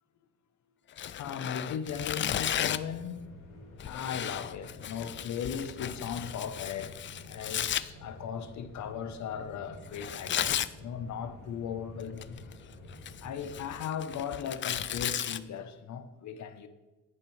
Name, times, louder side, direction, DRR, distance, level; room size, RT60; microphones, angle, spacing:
Tearing, 0.9-3.0 3.8-7.8 9.9-10.7 12.0-12.5 12.9-15.4, left 10 dB, 40° left, 0.4 m, -34 dB
voice 1, 1.0-12.4 13.2-16.7, left 7 dB, 70° left, 1.0 m, -38 dB
sound 1, 2.5-13.6, left 1 dB, 90° left, 3.1 m, -50 dB
11.0 x 8.8 x 3.3 m
cardioid pair, 90°, 30 cm